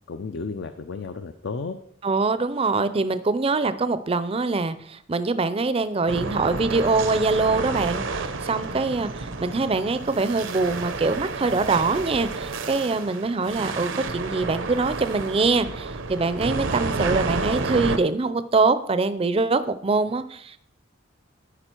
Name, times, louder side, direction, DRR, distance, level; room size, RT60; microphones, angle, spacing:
voice 1, 0.1-1.8, left 4 dB, 60° left, 9 dB, 0.5 m, -33 dB
voice 2, 2.0-20.6, right 3 dB, 30° right, 13 dB, 0.5 m, -24 dB
sound 1, 6.1-18.0, right 3 dB, 75° right, 0.7 m, -30 dB
13.5 x 4.9 x 4.5 m, 0.68 s
head